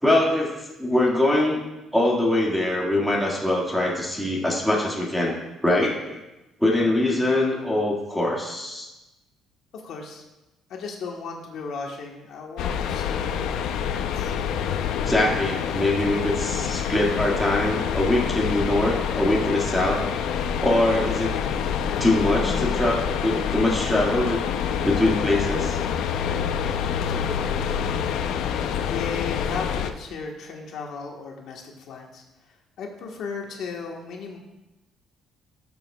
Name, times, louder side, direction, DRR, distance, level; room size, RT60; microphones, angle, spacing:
voice 1, 0.0-1.6 1.9-5.3 5.6-6.2 6.6-8.9 15.1-20.2 20.6-21.3 22.0-24.4 24.8-25.8, left 1 dB, ahead, -5 dB, 1.9 m, -23 dB
voice 2, 9.7-10.2 10.7-14.3 27.0-27.9 28.8-32.2 32.8-34.4, left 5 dB, 60° left, 0 dB, 1.4 m, -36 dB
sound 1, 12.6-29.9, left 8 dB, 80° left, 0.6 m, -27 dB
18.0 x 7.2 x 2.4 m, 1.0 s
cardioid pair, 160°, 0 cm